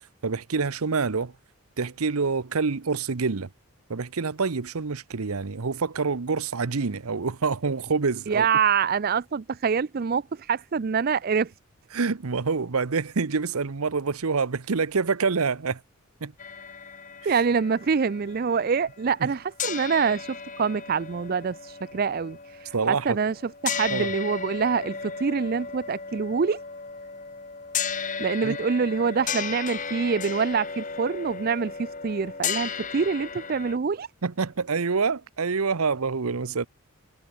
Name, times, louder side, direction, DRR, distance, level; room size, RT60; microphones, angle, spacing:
voice 1, 0.2-1.3 1.8-3.5 3.9-8.5 11.9-15.8 16.2-16.3 17.2-17.3 19.2-19.3 22.7-23.2 23.9-24.1 28.4-28.6 34.2-36.7, right 4 dB, 85° right, 0.8 m, -26 dB
voice 2, 8.3-11.5 17.3-26.6 28.2-34.1, right 5 dB, 45° right, 0.4 m, -25 dB
sound 1, 16.4-19.3 19.6-33.8, left 6 dB, 35° left, 1.8 m, -35 dB
head